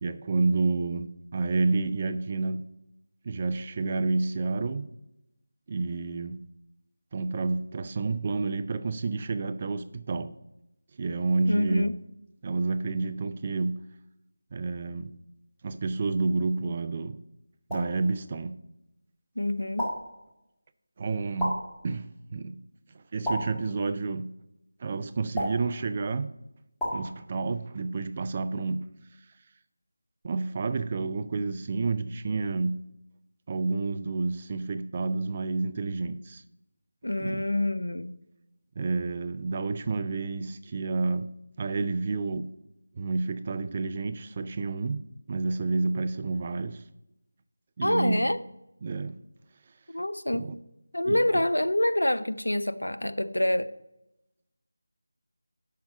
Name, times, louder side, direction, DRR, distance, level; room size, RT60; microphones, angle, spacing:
voice 1, 0.0-2.6 3.2-4.9 5.7-6.4 7.1-10.3 11.0-11.9 12.4-13.8 14.5-15.2 15.6-17.2 17.7-18.6 21.0-22.6 22.9-24.3 24.8-26.3 26.8-28.9 30.2-32.8 33.5-36.4 37.2-37.4 38.8-42.5 43.0-45.0 45.3-46.8 47.8-48.3 48.8-49.2 50.3-50.6 51.1-51.4, right 3 dB, 30° right, 0.4 m, -29 dB
voice 2, 11.5-12.0 19.4-19.9 37.0-38.1 47.8-48.4 49.9-50.5 50.9-53.7, left 1 dB, 85° left, 0.6 m, -26 dB
sound 1, 17.7-18.0 19.8-20.2 21.4-21.8 23.3-23.7 25.4-25.8 26.8-27.1, equal, 5° left, 1.9 m, -31 dB
5.7 x 5.6 x 6.4 m
figure-of-eight pair, 165°, 0 cm